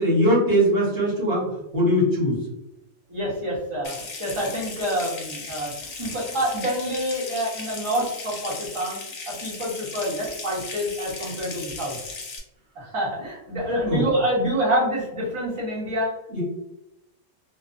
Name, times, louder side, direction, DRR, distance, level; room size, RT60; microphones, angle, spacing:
voice 1, 0.0-2.4 13.8-14.0 16.3-16.4, equal, 45° right, -6 dB, 1.1 m, -21 dB
voice 2, 3.1-9.0 9.3-12.0 12.7-16.1, equal, 25° right, -7 dB, 0.7 m, -27 dB
Water tap faucet / Sink (filling or washing) / Trickle dribble, 3.8-12.4, left 4 dB, 60° left, 0.8 m, -37 dB
2.6 x 2.2 x 2.5 m, 0.87 s
omnidirectional pair, 1.5 m